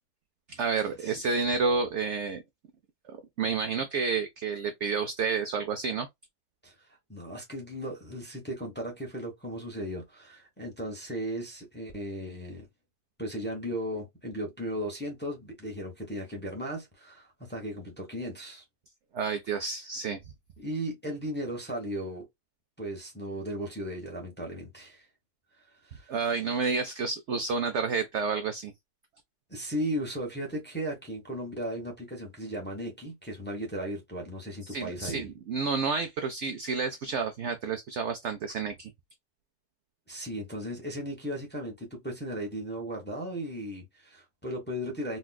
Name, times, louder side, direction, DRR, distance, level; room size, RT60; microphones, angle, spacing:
voice 1, 0.5-2.4 3.1-6.1 19.1-20.2 26.1-28.7 34.7-38.9, right 5 dB, 70° right, 0.7 m, -30 dB
voice 2, 7.1-12.7 13.2-18.6 20.6-22.2 22.8-25.1 25.8-26.1 29.5-35.3 40.1-45.2, equal, 10° left, 0.8 m, -36 dB
4.2 x 2.3 x 2.2 m
omnidirectional pair, 1.6 m